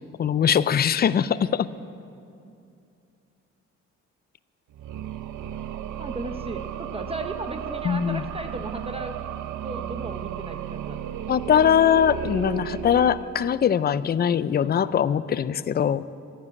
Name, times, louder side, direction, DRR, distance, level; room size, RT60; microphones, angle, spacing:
voice 1, 0.2-1.7 7.8-8.2 11.3-16.0, left 8 dB, 35° left, 16 dB, 0.5 m, -21 dB
sound 1, 4.7-13.8, right 10 dB, 80° right, 0.7 m, -34 dB
voice 2, 6.0-9.2 9.6-11.0, right 1 dB, 20° right, 6 dB, 0.9 m, -35 dB
12.5 x 11.5 x 8.5 m, 2.5 s
cardioid pair, 90°, 30 cm